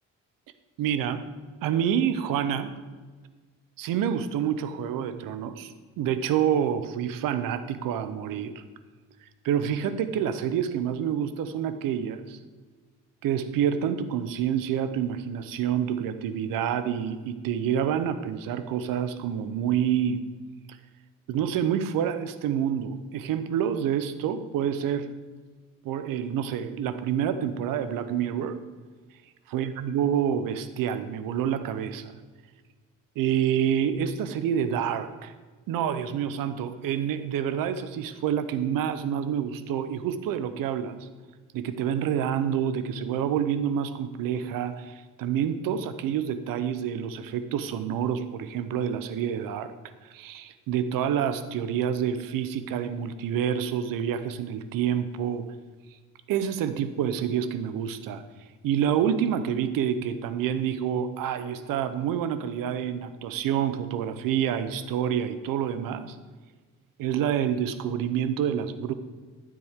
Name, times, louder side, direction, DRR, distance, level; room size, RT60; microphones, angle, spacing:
voice 1, 0.8-1.2 1.6-2.7 3.8-8.6 9.4-12.4 13.2-20.2 20.7-20.8 21.3-25.1 25.8-28.6 29.5-32.1 33.2-35.3 35.7-41.1 41.5-49.7 50.0-55.5 56.3-58.2 58.6-66.2 67.0-68.9, right 9 dB, 85° right, 12 dB, 0.8 m, -28 dB
13.0 x 7.7 x 3.6 m, 1.4 s
supercardioid pair, 70°, 33 cm